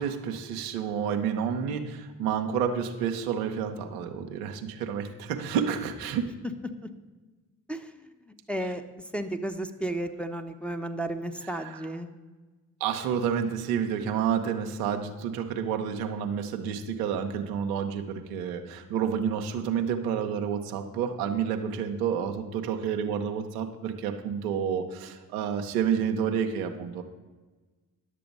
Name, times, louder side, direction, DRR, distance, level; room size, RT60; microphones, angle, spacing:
voice 1, 0.0-6.3 8.7-8.8 11.4-11.9 12.8-27.0, right 7 dB, 90° right, 5 dB, 0.7 m, -29 dB
voice 2, 8.5-8.8 9.1-12.1, right 1 dB, 5° left, 5 dB, 0.9 m, -33 dB
11.0 x 6.8 x 5.3 m, 1.3 s
hypercardioid pair, 40°, 44 cm